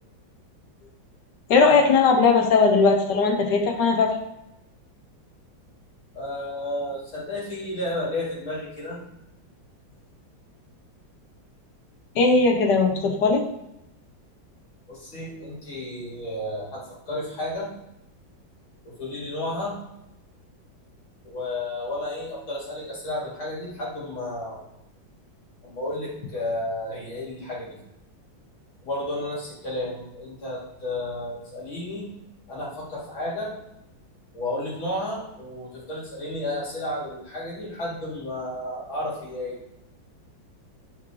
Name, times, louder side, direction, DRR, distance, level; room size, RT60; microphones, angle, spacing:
voice 1, 1.5-4.1 12.2-13.4, left 4 dB, 65° left, 3 dB, 1.5 m, -19 dB
voice 2, 6.1-9.0 14.9-17.7 18.8-19.8 21.2-24.6 25.6-27.8 28.8-32.1 32.5-33.5 34.3-39.6, left 1 dB, 85° left, -6 dB, 3.8 m, -32 dB
8.5 x 5.3 x 3.2 m, 0.85 s
omnidirectional pair, 2.1 m